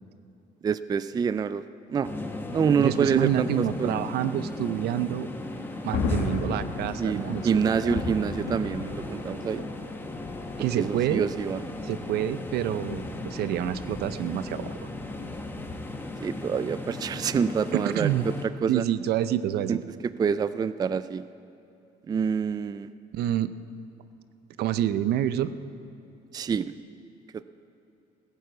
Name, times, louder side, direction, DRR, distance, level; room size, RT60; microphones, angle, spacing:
voice 1, 0.6-1.6 1.9-2.1 2.5-3.5 3.8-4.0 7.0-9.7 10.6-11.6 16.2-18.8 19.7-19.8 20.0-21.2 22.1-22.9 26.3-26.7 27.3-27.4, right 6 dB, 25° right, 14 dB, 0.3 m, -27 dB
sound 1, 2.0-18.5, left 2 dB, 10° left, 1.2 m, -37 dB
voice 2, 2.8-5.3 5.8-8.0 10.6-11.3 11.8-14.7 17.7-18.3 18.7-19.8 23.1-23.5 24.6-25.5, right 11 dB, 70° right, 14 dB, 0.6 m, -27 dB
Thunder, 5.3-16.0, left 4 dB, 85° left, 1.9 m, -36 dB
17.0 x 7.7 x 8.2 m, 2.8 s
cardioid pair, 110°, 17 cm